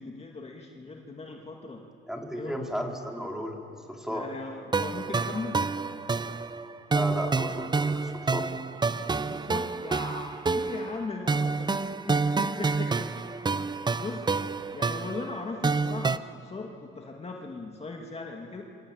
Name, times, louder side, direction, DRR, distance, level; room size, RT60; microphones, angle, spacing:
voice 1, 0.0-1.8 2.3-2.6 4.1-5.6 9.1-18.6, left 3 dB, 30° left, 1 dB, 2.3 m, -39 dB
voice 2, 2.1-3.6 3.9-4.3 6.9-8.5, equal, ahead, 1 dB, 4.0 m, -34 dB
sound 1, 4.7-16.2, right 4 dB, 20° right, 0.6 m, -28 dB
26.0 x 24.5 x 9.0 m, 2.8 s
cardioid pair, 90°, 20 cm